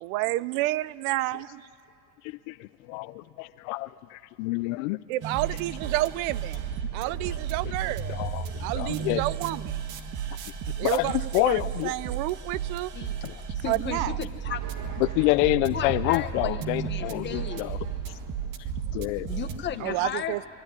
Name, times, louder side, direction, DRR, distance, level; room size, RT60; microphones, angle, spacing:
voice 1, 0.0-1.6 5.1-6.6 6.9-8.2 8.6-9.8 10.8-12.9 13.7-14.1 19.8-20.5, right 17 dB, 65° right, 20 dB, 0.7 m, -29 dB
voice 2, 2.5-5.0 8.1-9.2 10.8-11.9 13.2-13.3 15.0-17.3 17.6-17.8 18.9-19.3, left 21 dB, 65° left, 12 dB, 0.6 m, -27 dB
sound 1, 5.2-19.6, right 7 dB, 40° right, 1.8 m, -34 dB
voice 3, 13.5-14.6 15.7-17.7 19.3-20.5, left 9 dB, 25° left, 6 dB, 1.4 m, -35 dB
27.0 x 22.5 x 9.8 m, 2.4 s
supercardioid pair, 145°, 45 cm